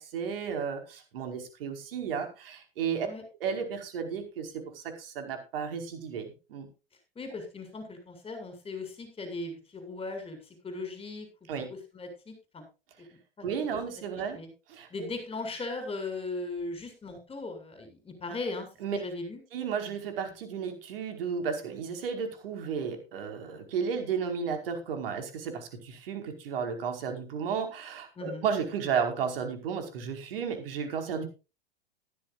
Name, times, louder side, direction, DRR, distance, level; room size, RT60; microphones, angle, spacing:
voice 1, 0.0-3.1 3.4-6.7 11.5-11.7 13.4-14.4 14.7-15.1 18.8-19.0 19.5-31.3, right 6 dB, 65° right, 6 dB, 5.1 m, -33 dB
voice 2, 7.2-10.4 10.6-11.3 11.9-12.6 13.4-13.5 14.3-14.5 14.9-19.4 28.2-28.4, left 3 dB, 20° left, 7 dB, 7.5 m, -38 dB
16.5 x 14.5 x 2.6 m, 0.31 s
hypercardioid pair, 100°, 30 cm